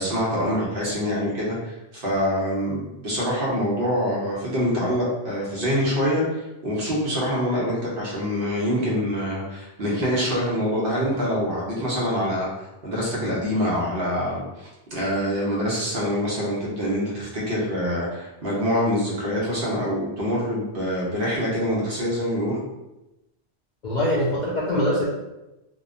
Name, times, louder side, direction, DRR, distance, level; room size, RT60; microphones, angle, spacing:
voice 1, 0.0-12.5 12.8-22.6, equal, 55° right, -5 dB, 0.8 m, -25 dB
voice 2, 23.8-25.0, left 1 dB, 60° left, -6 dB, 0.5 m, -23 dB
2.8 x 2.1 x 2.4 m, 0.97 s
omnidirectional pair, 1.2 m